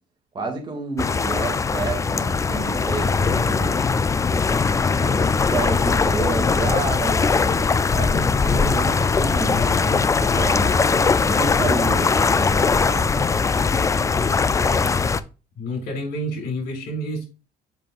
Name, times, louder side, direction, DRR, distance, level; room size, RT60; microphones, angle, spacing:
voice 1, 0.3-3.8 4.9-9.6 10.2-13.1, right 3 dB, 25° right, 2 dB, 2.2 m, -30 dB
sound 1, 1.0-15.2, left 4 dB, 20° left, 0.4 m, -20 dB
voice 2, 9.4-10.0 15.6-17.2, left 1 dB, 80° left, 2 dB, 3.9 m, -29 dB
7.2 x 5.5 x 2.5 m, 0.32 s
cardioid pair, 110°, 17 cm